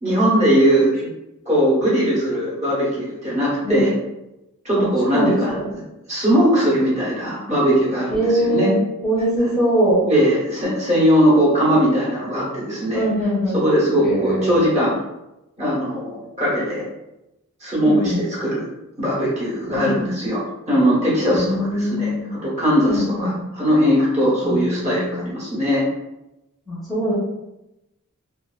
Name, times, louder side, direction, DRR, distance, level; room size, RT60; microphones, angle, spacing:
voice 1, 0.0-1.1 1.4-3.9 4.6-5.6 6.1-8.7 10.1-13.0 13.5-14.9 15.6-16.8 17.6-18.7 19.0-25.9, equal, 30° right, -7 dB, 1.0 m, -19 dB
voice 2, 5.1-5.7 8.1-10.1 12.9-13.6 14.0-14.7 17.8-18.2 19.7-20.3 21.3-22.4 22.9-23.4 24.4-25.3 26.7-27.1, equal, ahead, -10 dB, 0.6 m, -22 dB
2.5 x 2.3 x 2.2 m, 0.93 s
head